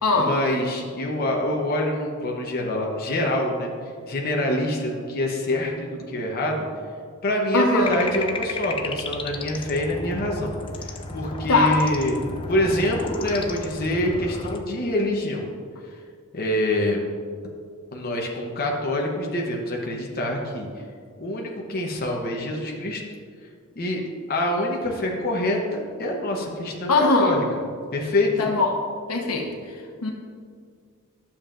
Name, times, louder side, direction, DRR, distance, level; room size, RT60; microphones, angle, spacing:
voice 1, 0.2-3.7 4.1-6.7 7.2-10.5 10.8-12.2 12.5-15.5 16.3-17.0 17.9-20.7 21.2-23.0 23.8-24.0 24.3-26.9 27.2-27.4 27.9-28.5, left 1 dB, 45° left, 0 dB, 0.9 m, -25 dB
voice 2, 7.5-7.9 11.5-11.8 26.9-27.3 28.4-28.7 29.1-29.5 30.0-30.1, left 3 dB, 85° left, 1 dB, 1.1 m, -20 dB
sound 1, 7.8-14.6, left 3 dB, 25° left, 0.4 m, -33 dB
11.5 x 7.0 x 2.5 m, 2.1 s
head